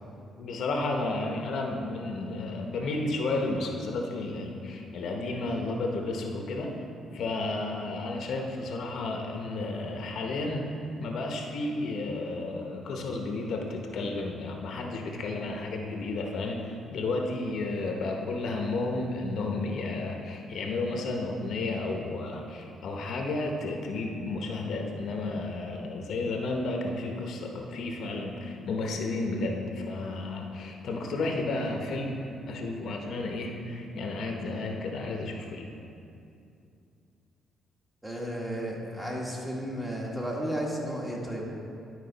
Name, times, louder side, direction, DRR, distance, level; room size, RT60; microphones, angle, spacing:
voice 1, 0.4-6.7 7.1-10.7 11.0-35.7, left 2 dB, 70° left, 2 dB, 0.8 m, -32 dB
voice 2, 38.0-41.4, equal, 5° right, -3 dB, 1.6 m, -33 dB
11.5 x 4.7 x 4.0 m, 2.6 s
cardioid pair, 90°, 0 cm